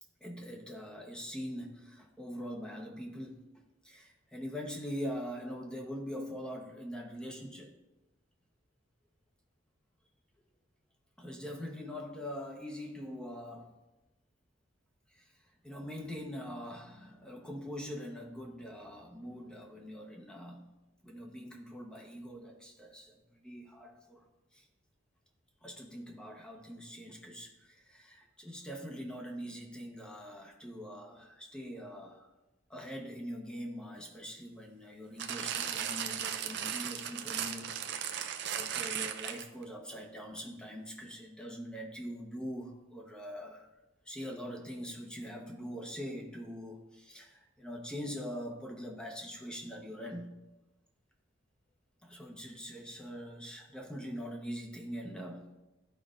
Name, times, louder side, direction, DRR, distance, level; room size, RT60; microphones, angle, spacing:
voice 1, 0.2-3.5 3.8-7.7 11.2-13.8 15.1-20.7 21.0-24.7 25.6-32.3 32.7-43.7 44.0-50.3 52.0-55.5, equal, 5° left, 0 dB, 1.0 m, -43 dB
sound 1, 35.2-39.6 40.4-40.5, right 9 dB, 65° right, 0.6 m, -36 dB
12.5 x 5.1 x 2.5 m, 1.0 s
head